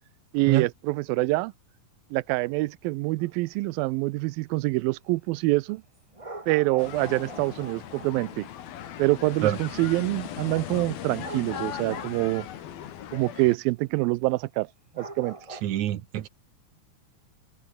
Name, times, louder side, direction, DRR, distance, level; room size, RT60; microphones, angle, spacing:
voice 1, 0.3-1.5 2.1-5.8 6.5-8.5 9.0-12.5 13.1-14.7 15.0-15.4, right 21 dB, 85° right, 2.4 m, -26 dB
sound 1, 3.2-3.4 6.1-8.3 11.2-12.3 12.8-12.9 13.2-13.3 14.0-14.1 14.9-15.6, right 2 dB, 20° right, 1.0 m, -42 dB
sound 2, 6.8-13.6, left 10 dB, 85° left, 3.9 m, -38 dB
voice 2, 15.6-16.3, right 12 dB, 65° right, 2.2 m, -26 dB
omnidirectional pair, 4.1 m